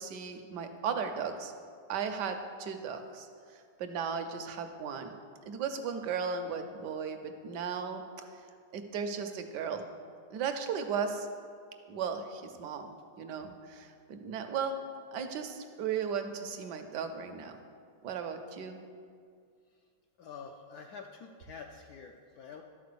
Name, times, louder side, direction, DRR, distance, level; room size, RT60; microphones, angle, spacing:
voice 1, 0.0-1.5 1.9-3.3 3.8-5.1 5.5-8.0 8.7-9.9 10.3-11.3 11.9-12.9 13.2-14.7 15.1-17.6 18.0-18.8, right 6 dB, 70° right, 7 dB, 1.2 m, -36 dB
voice 2, 20.2-22.6, left 5 dB, 70° left, 2 dB, 0.9 m, -47 dB
12.0 x 4.3 x 6.8 m, 2.2 s
omnidirectional pair, 2.1 m